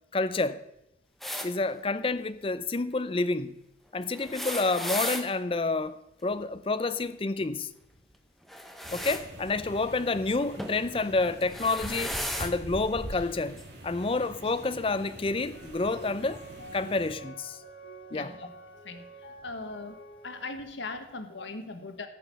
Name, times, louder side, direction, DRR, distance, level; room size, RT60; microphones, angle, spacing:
voice 1, 0.1-0.6 1.4-3.5 3.9-7.7 8.9-16.4 16.7-17.6 18.1-18.3, left 3 dB, 30° left, 0.5 m, -29 dB
sound 1, 1.2-1.5 4.1-5.3 8.5-9.2 10.6-10.8 11.4-12.5 13.6-13.7 14.9-15.0, equal, ahead, 0.9 m, -35 dB
sound 2, 8.8-17.1, right 1 dB, 65° right, 2.4 m, -44 dB
sound 3, 15.5-20.6, right 2 dB, 55° left, 5.4 m, -48 dB
voice 2, 18.1-18.5 18.8-19.1 19.4-20.0 20.2-22.1, left 3 dB, 80° left, 1.3 m, -39 dB
13.5 x 6.3 x 6.9 m
head